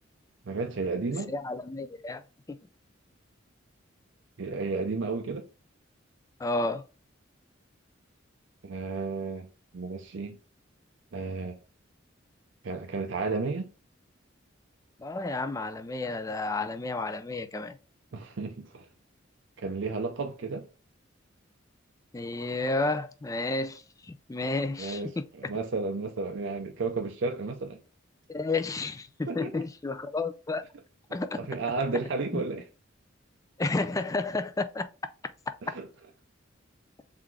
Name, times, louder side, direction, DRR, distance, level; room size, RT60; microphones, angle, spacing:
voice 1, 0.4-1.3 4.4-5.5 8.6-9.5 9.7-10.4 11.1-11.6 12.6-13.7 18.1-18.9 19.6-20.7 24.8-25.1 25.4-27.8 29.3-29.6 31.3-32.6 35.6-35.9, right 3 dB, 65° right, 0.5 m, -32 dB
voice 2, 1.3-2.2 2.5-2.6 6.4-6.8 15.0-17.8 22.1-25.0 28.3-30.6 31.1-31.4 32.3-32.4 33.6-34.8, left 3 dB, 15° left, 0.3 m, -31 dB
3.7 x 3.5 x 3.3 m
head